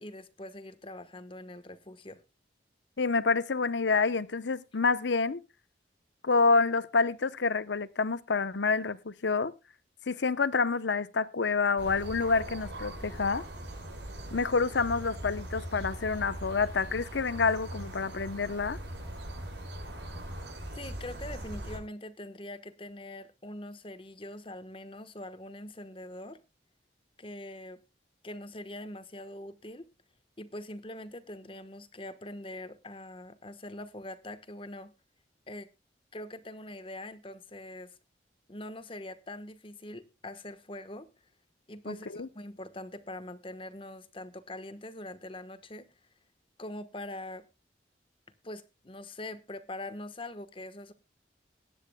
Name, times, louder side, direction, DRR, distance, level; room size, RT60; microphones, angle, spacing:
voice 1, 0.0-2.2 20.7-26.4 27.2-27.8 28.2-29.9 30.4-34.9 35.5-35.7 36.1-38.0 38.5-41.1 41.7-45.9 46.6-47.4 48.4-50.9, left 1 dB, 30° left, 1.2 m, -43 dB
voice 2, 3.0-5.4 6.2-9.5 10.1-13.4 14.3-18.8 41.9-42.3, left 4 dB, 80° left, 0.8 m, -28 dB
sound 1, 11.8-21.8, right 1 dB, 85° right, 6.4 m, -41 dB
21.0 x 10.0 x 2.2 m
head